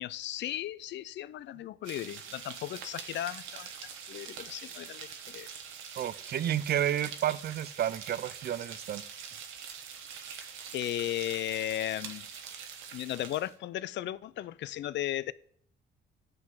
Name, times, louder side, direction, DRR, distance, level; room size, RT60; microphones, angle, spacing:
voice 1, 0.0-3.7 4.1-5.5 10.7-12.3 12.9-15.3, left 13 dB, 65° left, 0.4 m, -36 dB
sound 1, 1.8-13.5, right 7 dB, 90° right, 1.0 m, -44 dB
voice 2, 6.0-9.0, right 10 dB, 55° right, 0.5 m, -31 dB
11.0 x 3.8 x 7.4 m
cardioid pair, 90°, 20 cm